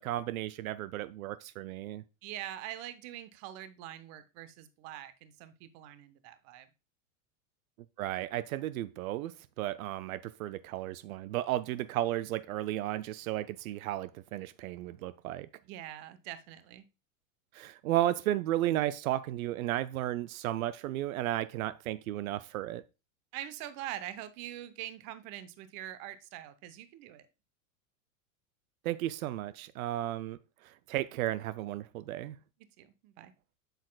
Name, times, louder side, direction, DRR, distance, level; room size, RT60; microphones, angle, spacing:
voice 1, 0.0-2.0 8.0-15.5 17.5-22.8 28.8-30.4 30.6-32.4, right 14 dB, 80° right, 0.5 m, -34 dB
voice 2, 2.2-6.7 15.6-16.8 23.3-27.3 32.8-33.3, right 12 dB, 40° right, 0.7 m, -44 dB
7.9 x 6.6 x 2.2 m
supercardioid pair, 135°, 41 cm